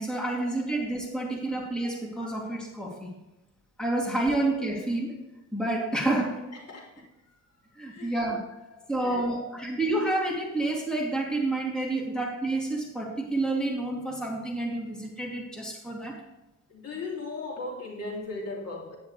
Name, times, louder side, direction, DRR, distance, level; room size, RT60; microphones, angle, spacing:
voice 1, 0.0-3.1 3.8-5.2 5.5-6.5 7.8-8.4 8.9-16.2, right 2 dB, 5° left, -3 dB, 2.7 m, -29 dB
voice 2, 6.5-7.1 7.9-8.1 8.7-9.7 16.7-19.0, left 3 dB, 55° left, -1 dB, 2.7 m, -38 dB
9.9 x 9.5 x 3.3 m, 0.98 s
cardioid pair, 90°, 30 cm